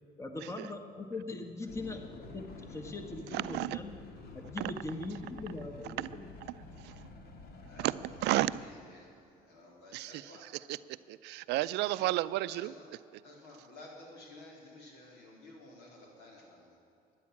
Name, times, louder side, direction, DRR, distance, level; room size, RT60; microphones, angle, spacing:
voice 1, 0.2-4.0 4.3-6.3, left 2 dB, 15° left, 5 dB, 1.4 m, -41 dB
sound 1, 1.7-8.7, left 3 dB, 70° left, 1.8 m, -49 dB
voice 2, 3.3-3.8 4.6-4.7 6.0-6.1 6.8-6.9 7.8-8.0 8.2-8.5 9.9-10.8 11.1-12.7, right 17 dB, 85° right, 16 dB, 0.5 m, -32 dB
voice 3, 7.6-9.1 9.4-10.4 11.8-12.2 12.5-12.8 13.2-16.8, left 2 dB, 85° left, -1 dB, 3.7 m, -53 dB
13.0 x 9.8 x 8.4 m, 2.6 s
cardioid pair, 110°, 17 cm